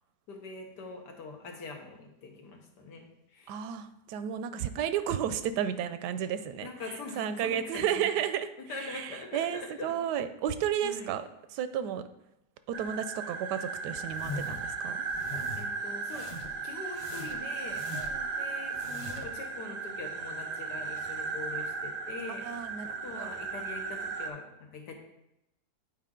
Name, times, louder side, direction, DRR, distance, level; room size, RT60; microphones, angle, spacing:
voice 1, 0.3-3.5 4.6-4.7 6.6-8.0 8.6-10.0 10.8-11.1 15.6-16.3 16.6-17.8 18.4-24.9, left 3 dB, 90° left, 2 dB, 1.7 m, -43 dB
voice 2, 3.5-6.7 7.2-8.5 8.8-12.1 12.7-15.0 17.9-18.3 22.3-23.3, right 9 dB, 85° right, 11 dB, 1.2 m, -33 dB
sound 1, 12.7-24.3, right 4 dB, 40° right, 0.6 m, -36 dB
sound 2, 14.1-14.7 15.1-15.6 16.1-16.6 16.9-18.3 18.7-19.4, left 2 dB, 35° left, 0.5 m, -42 dB
9.0 x 4.6 x 3.7 m, 0.86 s
omnidirectional pair, 1.8 m